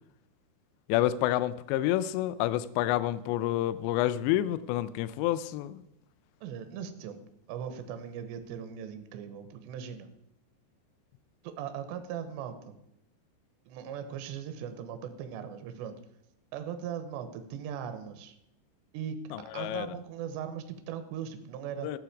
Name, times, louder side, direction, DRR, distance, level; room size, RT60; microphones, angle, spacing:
voice 1, 0.9-5.8 19.3-20.0 21.8-22.0, left 13 dB, 85° left, 15 dB, 2.5 m, -29 dB
voice 2, 6.4-7.2 7.5-10.1 11.4-12.7 13.7-16.0 16.5-18.3 18.9-19.2 19.5-21.9, right 8 dB, 75° right, 9 dB, 2.9 m, -39 dB
14.5 x 8.5 x 4.9 m, 0.80 s
omnidirectional pair, 5.8 m